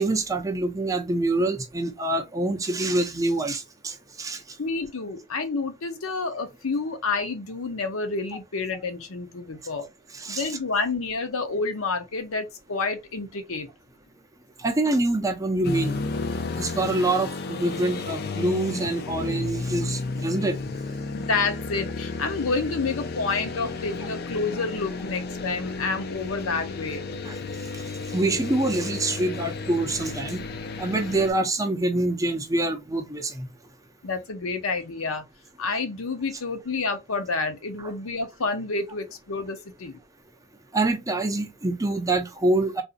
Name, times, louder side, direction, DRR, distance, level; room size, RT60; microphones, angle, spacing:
voice 1, 0.0-4.4 10.1-10.6 14.6-16.0 16.6-20.6 27.3-27.4 28.1-30.4 30.8-33.5 37.8-37.9 40.7-42.8, right 2 dB, 15° right, 0.5 m, -25 dB
voice 2, 4.6-9.9 10.3-13.7 21.1-27.0 34.0-35.2 35.6-40.0, left 4 dB, 75° left, 0.8 m, -29 dB
sound 1, 15.6-31.3, left 3 dB, 45° left, 0.4 m, -33 dB
3.9 x 2.6 x 2.5 m
head